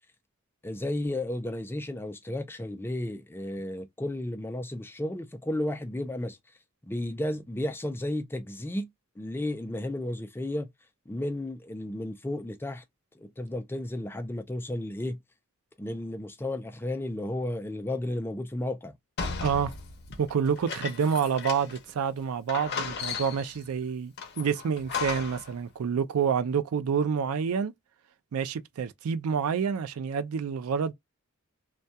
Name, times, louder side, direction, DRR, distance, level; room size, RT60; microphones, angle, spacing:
voice 1, 0.6-6.4 6.9-8.9 9.2-10.7 11.1-12.8 13.1-15.2 15.8-18.9, left 1 dB, 10° left, 0.3 m, -33 dB
sound 1, 19.2-21.9 22.2-22.3 22.5-23.6 24.2-25.5, left 5 dB, 50° left, 0.6 m, -35 dB
voice 2, 19.4-19.7 20.2-27.7 28.3-30.9, right 6 dB, 80° right, 0.4 m, -28 dB
2.2 x 2.2 x 2.6 m
head